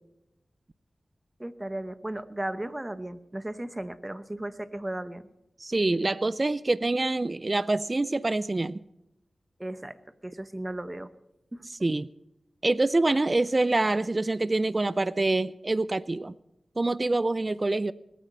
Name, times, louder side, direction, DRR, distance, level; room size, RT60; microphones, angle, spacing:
voice 1, 1.4-5.3 9.6-10.0 10.2-11.1 11.5-11.6, right 1 dB, 25° right, 14 dB, 1.0 m, -35 dB
voice 2, 5.6-8.8 11.8-12.1 12.6-16.3 16.8-17.9, right 2 dB, 40° right, 19 dB, 0.4 m, -26 dB
20.5 x 9.2 x 5.5 m, 0.89 s
cardioid pair, 45°, 0 cm